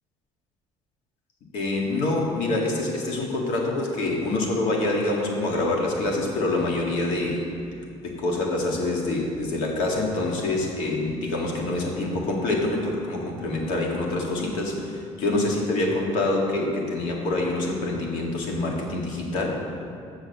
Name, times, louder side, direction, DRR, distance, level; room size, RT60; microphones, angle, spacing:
voice 1, 1.5-7.4 8.0-19.6, left 2 dB, 85° left, -1 dB, 1.8 m, -26 dB
7.1 x 6.5 x 6.6 m, 2.6 s
cardioid pair, 115°, 13 cm